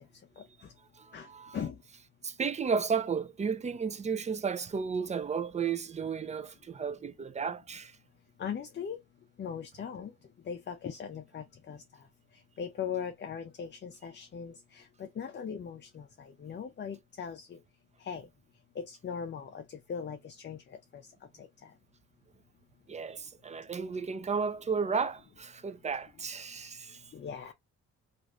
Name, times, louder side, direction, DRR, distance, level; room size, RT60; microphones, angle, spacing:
voice 1, 1.0-1.6 2.2-8.0 22.9-27.1, right 5 dB, 25° right, 0.4 m, -33 dB
voice 2, 8.4-9.0 9.4-10.1 10.5-11.8 12.6-17.6 18.0-18.2 18.8-20.6 27.1-27.5, left 7 dB, 35° left, 0.5 m, -39 dB
3.1 x 2.5 x 2.4 m
cardioid pair, 90°, 30 cm